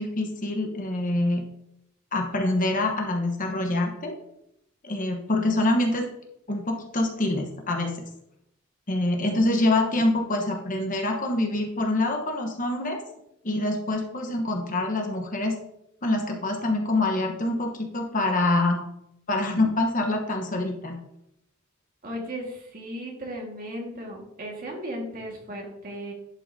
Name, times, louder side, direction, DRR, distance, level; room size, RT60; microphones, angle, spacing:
voice 1, 0.0-1.4 2.1-4.2 4.8-6.1 6.5-8.0 8.9-13.0 13.4-15.5 16.0-18.8 19.3-21.0, left 2 dB, 40° left, 2 dB, 1.1 m, -25 dB
voice 2, 22.0-26.1, equal, 40° right, -1 dB, 1.8 m, -36 dB
11.0 x 5.6 x 2.7 m, 0.79 s
head